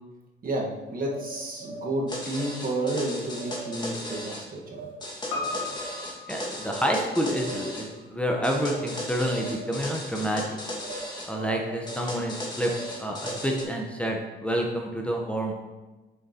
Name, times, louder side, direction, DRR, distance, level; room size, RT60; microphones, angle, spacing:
voice 1, 0.4-4.9, right 1 dB, 45° right, -2 dB, 1.4 m, -31 dB
sound 1, 1.0-2.1 2.7-3.0 3.3-3.9 4.7-5.0 5.3-5.8 6.6-7.0 7.2-7.9 8.6-9.0 9.2-9.9 10.8-11.1 11.3-12.1 12.7-13.7, right 5 dB, 70° right, 1.3 m, -41 dB
sound 2, 2.1-4.4 5.0-7.9 8.4-11.3 11.9-13.6, left 1 dB, 20° left, 1.7 m, -36 dB
Piano, 5.3-9.8 10.1-10.2, left 3 dB, 90° left, 1.3 m, -39 dB
voice 2, 6.3-10.4 11.3-12.7 13.0-15.5, equal, 5° left, 0 dB, 0.8 m, -28 dB
7.3 x 6.5 x 2.8 m, 1.2 s
cardioid pair, 90°, 20 cm